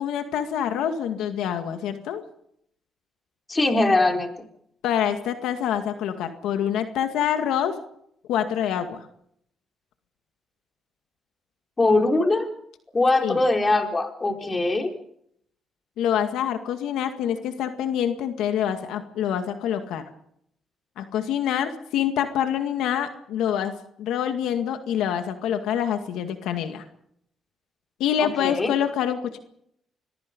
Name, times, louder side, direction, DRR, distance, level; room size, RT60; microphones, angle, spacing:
voice 1, 0.0-2.2 4.8-7.8 8.3-9.0 13.2-13.4 14.4-14.5 16.0-20.0 21.0-23.7 24.0-26.8 28.0-29.4, left 9 dB, 85° left, 7 dB, 2.0 m, -26 dB
voice 2, 3.5-4.3 11.8-12.5 12.9-14.9 28.2-28.7, left 2 dB, 25° left, 4 dB, 4.3 m, -21 dB
26.5 x 21.0 x 5.3 m, 0.71 s
cardioid pair, 90°, 0 cm